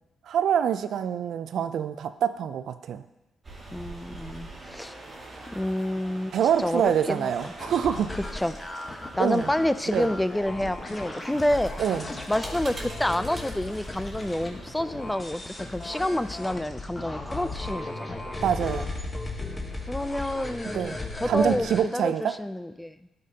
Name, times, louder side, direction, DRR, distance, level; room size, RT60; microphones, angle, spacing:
voice 1, 0.3-3.0 6.3-8.1 9.2-9.5 9.9-10.1 11.8-12.1 18.4-18.9 20.7-21.0 21.3-22.4, right 9 dB, 70° right, 11 dB, 0.4 m, -25 dB
sound 1, 3.4-16.4, right 2 dB, 35° right, 2.0 m, -45 dB
voice 2, 3.7-5.0 5.5-6.3 6.6-7.5 8.3-8.6 8.9-11.7 12.3-18.2 19.9-23.0, left 1 dB, 10° left, 13 dB, 0.4 m, -28 dB
sound 2, 7.6-21.8, left 2 dB, 25° left, 1.2 m, -36 dB
11.0 x 5.2 x 2.8 m, 0.97 s
supercardioid pair, 65°, 0 cm